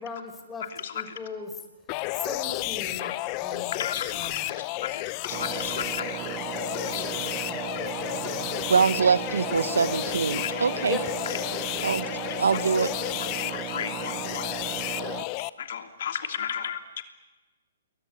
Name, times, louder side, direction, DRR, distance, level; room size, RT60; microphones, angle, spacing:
voice 1, 0.0-0.6 0.9-1.5 2.2-3.1 3.4-3.8 4.1-4.4 6.8-8.5 10.9-11.0, left 4 dB, 10° left, 6 dB, 4.9 m, -38 dB
voice 2, 0.6-1.1 3.0-3.2 3.7-6.1 6.9-7.0 10.3-10.8 11.2-11.3 12.2-12.9 13.2-14.4 15.6-17.0, left 8 dB, 60° left, 6 dB, 3.1 m, -35 dB
sound 1, 1.9-15.5, left 19 dB, 35° left, 0.8 m, -32 dB
Engine, 5.3-15.2, right 14 dB, 30° right, 1.1 m, -36 dB
voice 3, 8.7-11.0 11.8-12.0 12.4-12.9, right 5 dB, 90° right, 13 dB, 1.5 m, -23 dB
29.0 x 22.0 x 8.8 m, 1.2 s
hypercardioid pair, 145°, 0 cm